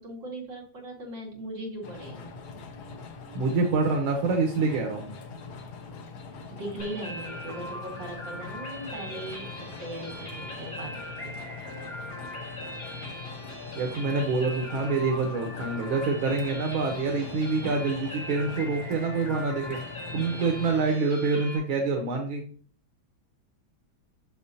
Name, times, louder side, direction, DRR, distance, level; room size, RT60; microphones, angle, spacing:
voice 1, 0.0-2.4 6.5-11.5, right 1 dB, 65° right, -3 dB, 2.9 m, -39 dB
sound 1, 1.8-20.8, left 4 dB, 80° left, 1.9 m, -42 dB
voice 2, 3.3-5.1 13.8-19.8 20.1-22.4, right 4 dB, 85° right, 2 dB, 1.8 m, -26 dB
sound 2, 6.8-21.6, left 1 dB, 30° left, 2.1 m, -40 dB
7.1 x 6.6 x 2.7 m, 0.43 s
omnidirectional pair, 2.2 m